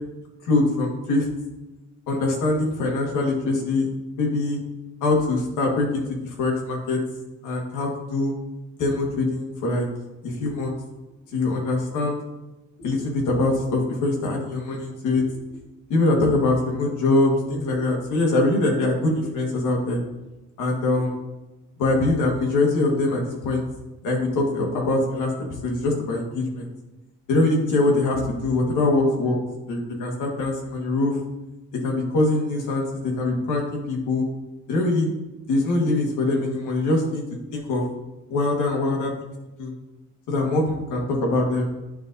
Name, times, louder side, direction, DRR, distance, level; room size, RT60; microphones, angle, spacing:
voice 1, 0.4-1.3 2.1-3.9 4.2-4.6 5.0-7.0 7.4-8.3 8.8-9.9 10.2-10.7 11.3-12.2 12.8-15.2 15.9-20.0 20.6-21.1 21.8-23.6 24.0-25.3 25.6-26.7 27.3-29.4 29.7-31.2 31.7-34.2 34.7-35.1 35.5-37.2 37.5-37.9 38.3-39.3 39.6-39.7 40.3-41.7, left 2 dB, 85° left, 0 dB, 1.7 m, -23 dB
10.0 x 4.0 x 2.7 m, 1.0 s
cardioid pair, 90°, 30 cm